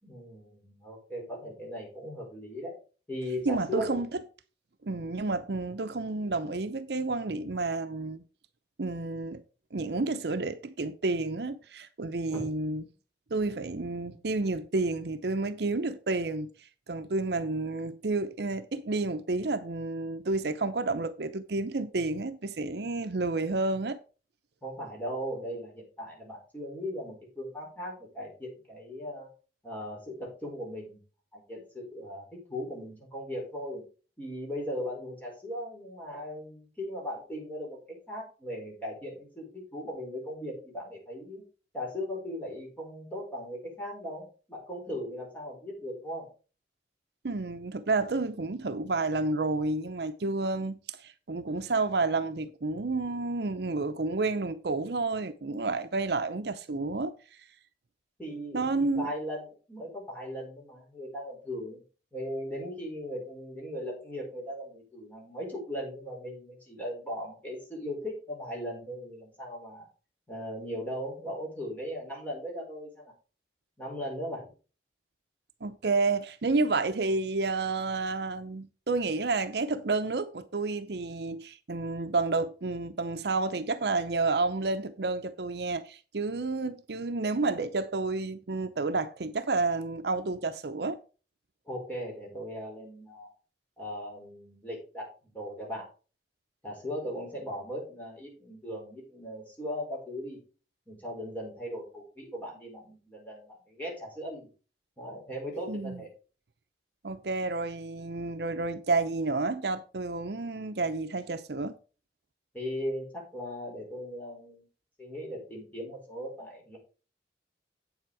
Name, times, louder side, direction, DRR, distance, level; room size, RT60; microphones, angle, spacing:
voice 1, 0.0-2.7 3.1-4.0 5.0-5.1 12.3-12.5 13.3-13.5 24.6-29.3 29.6-31.0 31.3-33.8 34.2-41.4 41.7-46.3 58.2-61.8 62.1-69.9 70.3-73.1 73.8-74.5 91.7-93.3 93.8-95.9 96.6-100.4 100.9-104.5 105.0-106.1 112.5-114.7 115.0-116.8, equal, 10° left, 4.6 m, -38 dB
voice 2, 3.5-4.2 4.8-8.2 8.8-9.4 9.7-12.8 13.3-16.5 16.9-24.0 47.2-57.1 58.5-59.1 75.6-91.0 105.7-106.0 107.0-111.7, right 3 dB, 65° right, 0.7 m, -30 dB
8.5 x 7.3 x 4.7 m
head